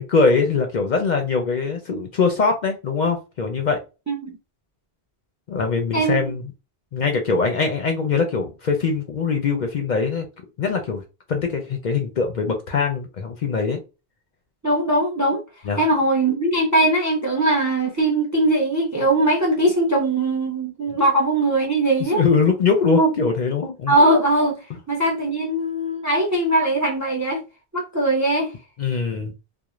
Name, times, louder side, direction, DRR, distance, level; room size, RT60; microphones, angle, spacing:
voice 1, 0.0-3.8 5.5-6.5 6.9-10.3 10.6-11.0 11.3-13.8 15.6-15.9 20.9-21.0 22.1-24.0 28.8-29.3, left 4 dB, 55° left, 0.6 m, -22 dB
voice 2, 5.9-6.2 14.6-15.4 15.8-22.2 23.9-24.6 24.9-27.4 27.7-28.5, right 1 dB, 25° right, 0.4 m, -20 dB
2.4 x 2.0 x 3.0 m
omnidirectional pair, 1.1 m